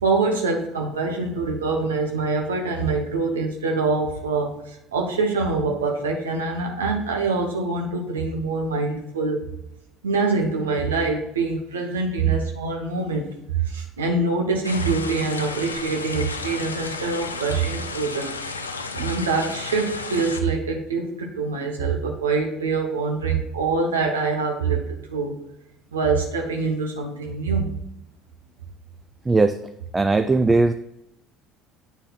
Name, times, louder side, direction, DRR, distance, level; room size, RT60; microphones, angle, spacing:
voice 1, 0.0-9.4 10.0-13.3 13.5-18.3 18.9-24.8 25.1-25.4 25.9-27.8, right 4 dB, 85° right, 2 dB, 0.8 m, -24 dB
sound 1, 14.6-20.4, left 4 dB, 90° left, 0.4 m, -33 dB
voice 2, 29.3-29.6 29.9-30.7, right 3 dB, 20° right, 9 dB, 0.4 m, -18 dB
8.2 x 4.0 x 3.9 m, 0.81 s
figure-of-eight pair, 60°, 0 cm